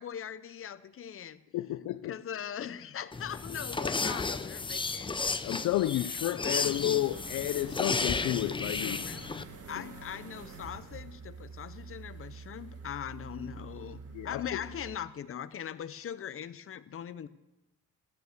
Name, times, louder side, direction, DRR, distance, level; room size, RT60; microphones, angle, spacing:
voice 1, 0.0-1.4 2.0-5.4 8.6-9.3 9.7-17.3, left 9 dB, 45° left, 0.8 m, -41 dB
voice 2, 1.5-2.2 5.4-9.1 14.1-14.6, left 14 dB, 75° left, 0.5 m, -31 dB
sound 1, 3.1-9.4, left 4 dB, 15° left, 0.6 m, -33 dB
sound 2, 6.5-15.0, right 4 dB, 55° right, 1.9 m, -47 dB
14.5 x 9.3 x 6.6 m
cardioid pair, 90°, 30 cm